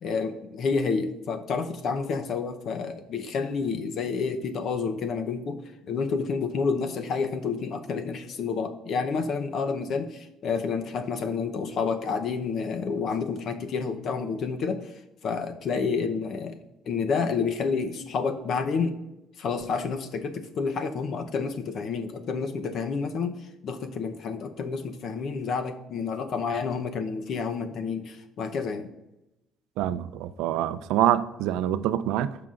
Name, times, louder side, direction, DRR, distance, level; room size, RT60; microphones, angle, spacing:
voice 1, 0.0-14.9 15.2-16.6 16.9-19.0 19.4-23.4 23.6-28.9, left 5 dB, 55° left, 0.7 m, -29 dB
voice 2, 29.8-32.4, right 12 dB, 90° right, 0.4 m, -25 dB
14.5 x 5.9 x 2.5 m
cardioid pair, 130°, 0 cm